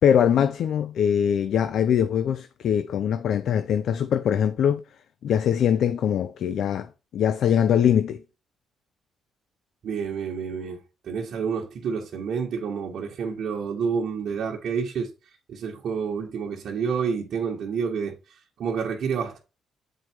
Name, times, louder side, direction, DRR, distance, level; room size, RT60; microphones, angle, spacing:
voice 1, 0.0-4.8 5.2-6.9 7.1-8.2, left 8 dB, 70° left, 0.5 m, -22 dB
voice 2, 9.8-10.8 11.0-15.1 15.5-18.1 18.6-19.4, right 6 dB, 65° right, 1.4 m, -29 dB
7.6 x 4.8 x 4.5 m
cardioid pair, 90°, 0 cm